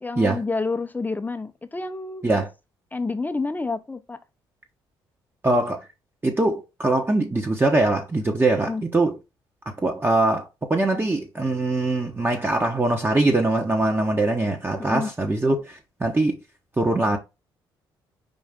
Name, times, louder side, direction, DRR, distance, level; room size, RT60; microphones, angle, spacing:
voice 1, 0.0-2.2 2.9-4.2 8.6-8.8 14.8-15.1, left 3 dB, 15° left, 0.6 m, -29 dB
voice 2, 5.4-5.8 6.2-9.2 9.8-16.4 16.8-17.2, right 2 dB, 20° right, 1.0 m, -22 dB
5.4 x 2.5 x 3.6 m
supercardioid pair, 60°, 10 cm